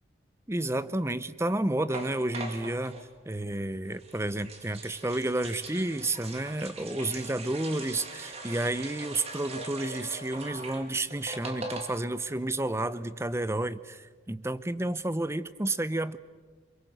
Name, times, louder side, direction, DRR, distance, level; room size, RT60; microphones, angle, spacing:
voice 1, 0.5-3.0 3.2-16.2, right 2 dB, 15° right, 15 dB, 0.7 m, -31 dB
sound 1, 1.9-3.1 3.9-12.2 12.5-12.6 12.8-13.1, right 2 dB, 35° right, 2.8 m, -42 dB
28.0 x 22.5 x 8.0 m, 1.4 s
head